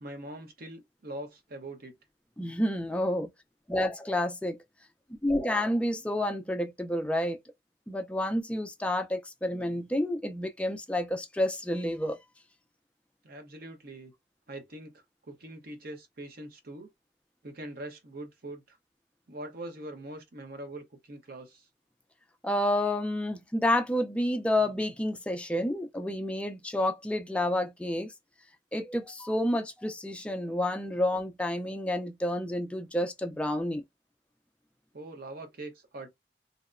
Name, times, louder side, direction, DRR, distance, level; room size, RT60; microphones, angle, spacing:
voice 1, 0.0-2.0 13.2-14.1 14.5-16.9 17.4-18.8 19.3-21.7 34.9-36.1, right 1 dB, 55° right, 0.8 m, -43 dB
voice 2, 2.4-3.3 3.7-4.6 5.2-7.4 7.9-12.2 22.4-28.1 28.7-33.8, left 1 dB, 5° left, 0.4 m, -29 dB
2.8 x 2.1 x 2.4 m
head